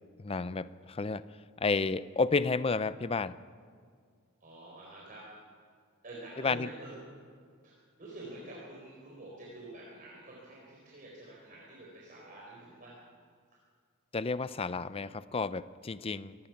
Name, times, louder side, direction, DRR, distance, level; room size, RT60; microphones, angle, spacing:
voice 1, 0.2-1.2 1.6-3.4 6.4-6.7 14.1-16.4, left 4 dB, 25° left, 15 dB, 0.5 m, -31 dB
voice 2, 4.4-5.4 6.0-7.0 7.6-13.1, right 1 dB, 40° right, -4 dB, 4.1 m, -47 dB
24.5 x 18.5 x 5.9 m, 2.1 s
head